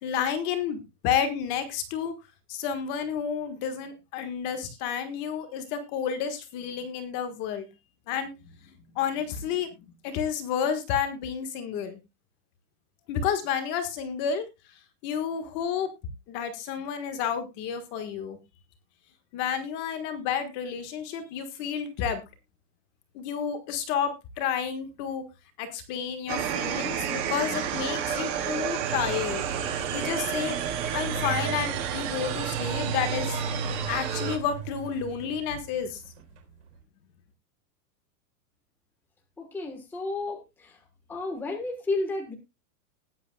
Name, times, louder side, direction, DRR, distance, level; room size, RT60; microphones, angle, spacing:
voice 1, 0.0-2.1 2.5-7.7 8.1-8.3 8.9-9.7 10.0-12.0 13.1-14.5 15.0-15.9 16.3-18.4 19.3-22.2 23.1-25.2 25.6-29.5 29.9-30.6 30.9-36.0, left 8 dB, 25° left, 8 dB, 1.5 m, -30 dB
sound 1, 26.3-34.4, right 9 dB, 15° right, 0.6 m, -31 dB
sound 2, 28.8-36.4, right 6 dB, 50° right, 3.6 m, -36 dB
voice 2, 39.4-40.8 41.1-42.3, left 2 dB, 5° left, 2 dB, 1.3 m, -32 dB
20.0 x 8.4 x 2.3 m, 0.24 s
supercardioid pair, 180°, 46 cm